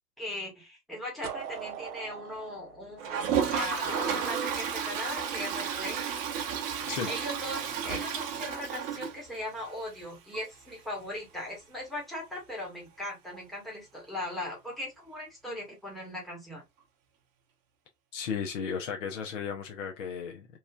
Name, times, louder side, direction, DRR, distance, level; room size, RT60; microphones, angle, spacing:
voice 1, 0.2-6.0 7.1-16.6, left 1 dB, ahead, 1.1 m, -39 dB
sound 1, 1.2-4.1, right 9 dB, 70° right, 0.7 m, -41 dB
Toilet flush, 3.0-9.7 10.0-10.1 10.3-10.4 10.7-10.8 13.3-13.4 14.7-14.8, right 7 dB, 35° right, 0.8 m, -32 dB
voice 2, 18.1-20.5, left 6 dB, 55° left, 0.7 m, -34 dB
3.0 x 2.3 x 2.3 m
hypercardioid pair, 115°, 47 cm